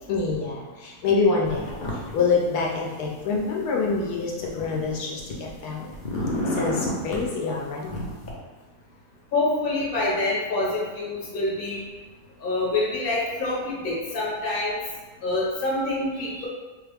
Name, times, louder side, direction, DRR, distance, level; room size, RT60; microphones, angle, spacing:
voice 1, 0.1-1.7 2.1-5.9 6.6-8.0, left 4 dB, 80° left, -2 dB, 1.1 m, -26 dB
sound 1, 1.5-2.1 2.4-3.4 4.0-5.6 5.9-7.3 7.9-8.3, left 1 dB, 65° left, 0.4 m, -31 dB
voice 2, 9.3-11.8 12.4-14.8 15.2-16.5, left 2 dB, 40° left, -5 dB, 0.9 m, -26 dB
3.4 x 2.3 x 3.3 m, 1.3 s
omnidirectional pair, 1.7 m